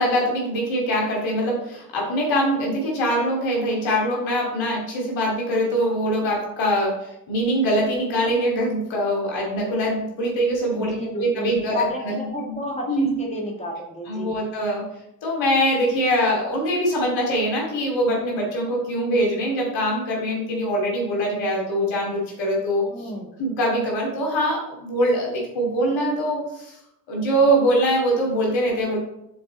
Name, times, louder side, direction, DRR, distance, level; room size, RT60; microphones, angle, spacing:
voice 1, 0.0-12.6 12.9-13.1 14.1-14.8 15.2-23.1 23.4-26.8 27.1-29.0, equal, 65° left, -2 dB, 2.7 m, -23 dB
voice 2, 10.7-14.3 22.9-23.3, left 1 dB, 15° left, -2 dB, 1.9 m, -31 dB
6.8 x 4.1 x 4.1 m, 0.81 s
hypercardioid pair, 50°, 49 cm